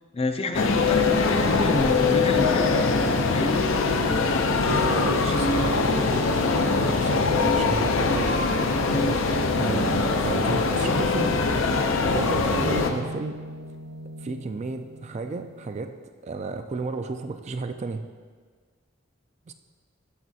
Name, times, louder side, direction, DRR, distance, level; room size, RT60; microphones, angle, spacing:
voice 1, 0.1-2.8 3.3-3.7, left 2 dB, 30° left, 7 dB, 0.4 m, -28 dB
sound 1, 0.5-12.9, left 3 dB, 80° left, 0.6 m, -22 dB
voice 2, 4.7-8.3 8.9-9.3 9.6-11.3 12.1-13.4 14.2-15.9 16.2-18.0 19.5-19.6, right 3 dB, 35° right, 8 dB, 0.3 m, -32 dB
sound 2, 12.6-15.9, equal, 55° right, 0.8 m, -40 dB
12.0 x 5.9 x 2.8 m, 1.5 s
head